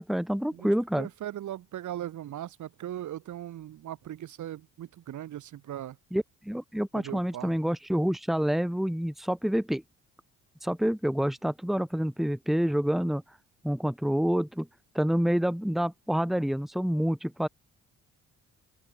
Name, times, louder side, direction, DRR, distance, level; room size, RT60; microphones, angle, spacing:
voice 1, 0.0-1.1 6.1-9.8 10.6-13.2 13.6-14.7 15.0-17.5, equal, ahead, 1.6 m, -27 dB
voice 2, 1.0-6.0 6.9-7.5, right 12 dB, 75° right, 7.4 m, -39 dB
open air
cardioid pair, 90°, 30 cm